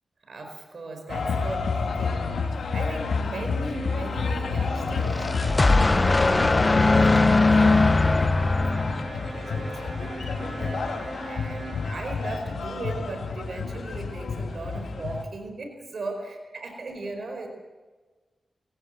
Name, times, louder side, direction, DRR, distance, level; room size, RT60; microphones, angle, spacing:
voice 1, 0.2-17.5, right 2 dB, 70° right, 4 dB, 4.6 m, -38 dB
sound 1, 1.1-15.2, left 4 dB, 90° left, 2.4 m, -29 dB
sound 2, 3.6-12.2, right 2 dB, 40° right, 5.6 m, -40 dB
sound 3, 4.9-9.5, left 2 dB, 35° left, 0.7 m, -21 dB
22.0 x 17.5 x 7.8 m, 1.3 s
cardioid pair, 60°, 0 cm